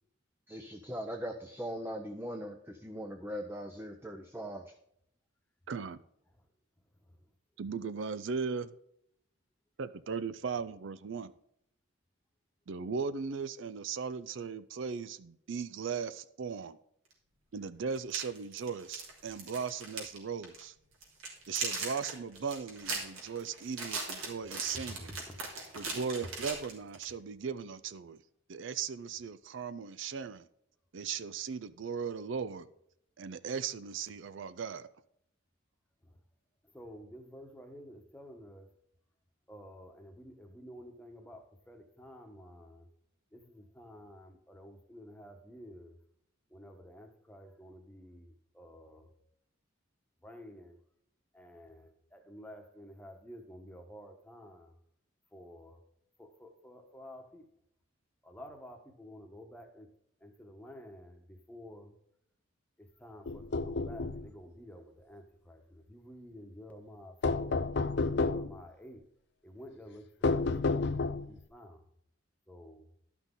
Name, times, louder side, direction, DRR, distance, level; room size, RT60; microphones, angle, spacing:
voice 1, 0.5-4.7, equal, 10° right, 4 dB, 0.6 m, -40 dB
voice 2, 5.7-6.0 7.6-8.7 9.8-11.3 12.7-16.8 17.5-20.7 21.5-25.1 25.8-28.2 28.5-30.5 30.9-32.7 33.2-34.9, right 5 dB, 65° right, 14 dB, 0.5 m, -37 dB
sound 1, 17.1-17.2 17.9-20.2 20.4-20.6 21.0-27.1, right 4 dB, 85° right, 3.1 m, -39 dB
voice 3, 24.7-25.4 36.0-36.2 36.7-38.7 39.5-42.9 43.3-46.0 46.5-49.1 50.2-50.8 51.3-54.8 55.3-55.8 56.2-57.4 58.2-59.9 60.2-61.9 62.8-67.7 68.1-69.0 69.4-70.1 70.4-71.8 72.5-72.9, equal, 5° left, 3 dB, 1.1 m, -51 dB
sound 2, 63.3-64.3 67.2-68.6 70.2-71.4, left 3 dB, 55° left, 0.5 m, -30 dB
12.0 x 6.0 x 3.8 m, 0.72 s
head